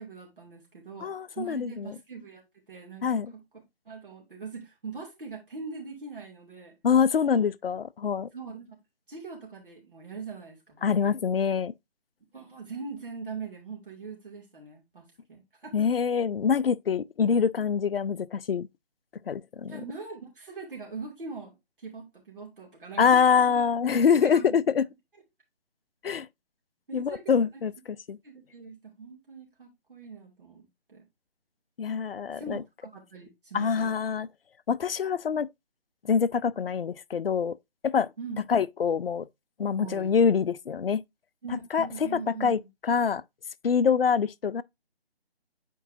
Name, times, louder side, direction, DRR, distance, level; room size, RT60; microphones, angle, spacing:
voice 1, 0.0-2.4 2.7-6.7 7.3-7.4 8.3-8.8 9.1-11.1 12.3-15.9 19.6-23.7 24.0-24.6 26.9-27.3 28.2-31.0 32.3-34.0 38.2-38.4 39.8-40.1 41.4-42.7, right 4 dB, 55° right, 2.8 m, -42 dB
voice 2, 1.0-1.9 3.0-3.3 6.8-8.3 10.8-11.7 15.7-18.7 19.3-19.8 23.0-24.9 26.0-26.3 26.9-27.7 28.1-28.2 31.8-32.6 33.5-34.3 34.7-35.5 36.0-37.6 37.8-38.1 38.5-39.3 39.6-41.0 41.7-41.9 42.4-43.2 43.6-44.6, left 6 dB, 65° left, 0.4 m, -25 dB
8.2 x 4.6 x 2.7 m
figure-of-eight pair, 155°, 32 cm